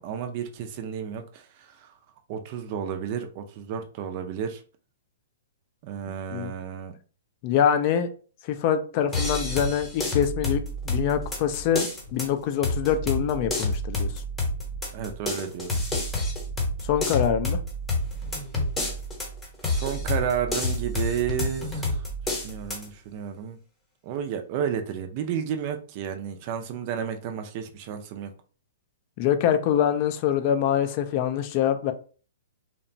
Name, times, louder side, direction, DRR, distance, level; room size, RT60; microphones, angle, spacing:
voice 1, 0.0-1.9 2.3-4.6 5.8-6.9 14.9-15.8 19.6-21.8 22.3-23.6 24.0-28.3, right 8 dB, 40° right, 0.4 m, -32 dB
voice 2, 7.4-8.1 8.4-14.1 16.8-17.6 29.2-31.9, left 9 dB, 40° left, 0.3 m, -24 dB
sound 1, 9.1-22.9, left 1 dB, 10° left, 0.8 m, -29 dB
2.8 x 2.1 x 2.6 m
hypercardioid pair, 140°, 0 cm